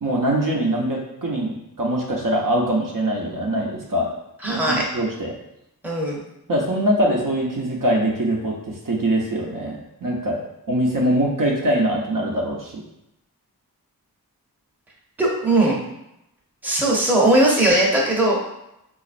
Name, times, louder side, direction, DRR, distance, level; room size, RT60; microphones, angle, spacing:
voice 1, 0.0-4.1 4.5-5.3 6.5-10.4 10.7-12.8, right 1 dB, 55° right, -2 dB, 0.7 m, -23 dB
voice 2, 4.4-4.9 5.8-6.2 15.2-15.8 16.6-18.5, right 1 dB, 5° right, -4 dB, 0.7 m, -19 dB
4.0 x 2.4 x 2.5 m, 0.85 s
wide cardioid pair, 85°, 38 cm